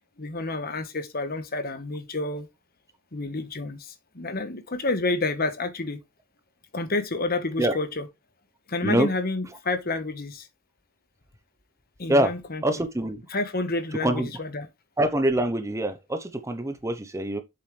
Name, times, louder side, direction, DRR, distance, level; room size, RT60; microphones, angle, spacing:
voice 1, 0.2-2.5 3.1-6.0 6.7-8.1 8.7-10.5 12.0-12.6 13.3-14.7, left 2 dB, 40° left, 1.2 m, -29 dB
voice 2, 12.6-13.2 14.0-14.3 15.0-17.4, right 1 dB, 15° right, 0.7 m, -24 dB
7.4 x 7.3 x 3.2 m
head